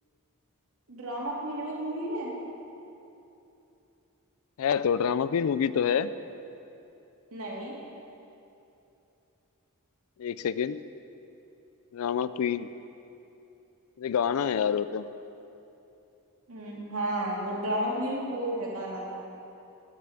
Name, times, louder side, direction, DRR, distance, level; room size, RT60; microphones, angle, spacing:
voice 1, 0.9-2.3 7.3-7.7 16.5-19.1, right 1 dB, 70° right, -4 dB, 2.6 m, -32 dB
voice 2, 4.6-6.1 10.2-10.8 11.9-12.7 14.0-15.0, left 7 dB, 70° left, 15 dB, 0.4 m, -27 dB
11.0 x 7.6 x 7.2 m, 2.8 s
head